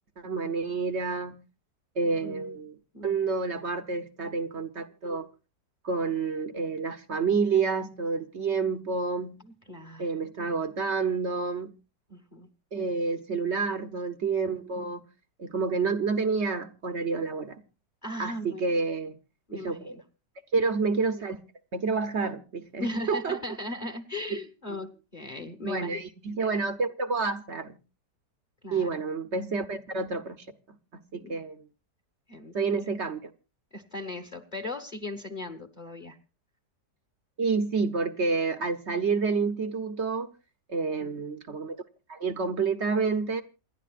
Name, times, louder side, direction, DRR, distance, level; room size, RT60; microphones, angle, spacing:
voice 1, 0.2-1.4 1.9-2.8 3.0-5.3 5.8-9.4 10.0-11.8 12.7-15.0 15.4-17.6 18.2-19.1 19.5-20.0 20.5-21.4 21.7-23.4 24.7-24.8 25.6-27.8 28.7-30.8 31.1-31.7 32.5-33.3 37.4-40.3 40.7-41.8 42.1-43.4, right 4 dB, 50° right, 0.9 m, -29 dB
voice 2, 2.2-2.5 2.9-3.2 9.7-10.6 12.1-12.5 18.0-18.7 19.5-20.0 22.8-26.0 28.6-28.9 31.1-31.4 32.3-32.8 33.7-36.2 41.0-41.1, left 1 dB, 30° left, 1.3 m, -38 dB
28.0 x 11.0 x 2.4 m
omnidirectional pair, 1.9 m